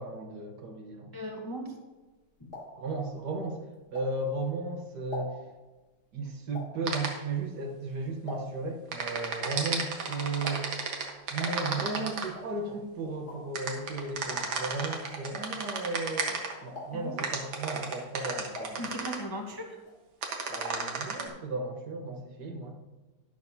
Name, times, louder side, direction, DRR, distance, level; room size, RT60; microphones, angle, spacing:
voice 1, 0.0-1.2 2.8-3.6 3.9-5.4 6.1-10.8 11.3-18.8 20.5-22.8, right 3 dB, 65° right, 3 dB, 1.7 m, -35 dB
voice 2, 1.1-1.7 2.4-2.5 16.9-17.3 18.8-19.8, equal, 15° left, 1 dB, 0.8 m, -38 dB
sound 1, 2.0-4.5 4.9-8.8 9.1-16.4 16.7-17.3 17.7-19.5 19.7-20.8 21.1-21.2 21.4-21.5, left 2 dB, 40° left, 3.0 m, -46 dB
sound 2, 6.9-7.1 8.9-12.3 13.5-16.5 17.2-19.2 20.2-21.2, right 5 dB, 80° right, 2.0 m, -32 dB
12.0 x 11.0 x 2.7 m, 1.2 s
omnidirectional pair, 2.1 m